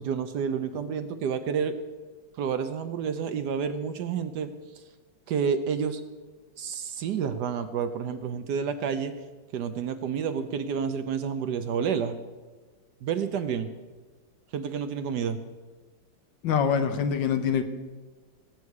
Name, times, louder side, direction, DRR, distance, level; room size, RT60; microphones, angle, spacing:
voice 1, 0.0-1.7 2.4-4.5 5.3-6.0 6.6-9.1 9.5-12.2 13.0-13.7 14.5-15.4, right 7 dB, 65° right, 10 dB, 1.2 m, -29 dB
voice 2, 16.4-17.6, left 7 dB, 75° left, 8 dB, 1.6 m, -24 dB
19.0 x 8.2 x 4.8 m, 1.3 s
omnidirectional pair, 2.1 m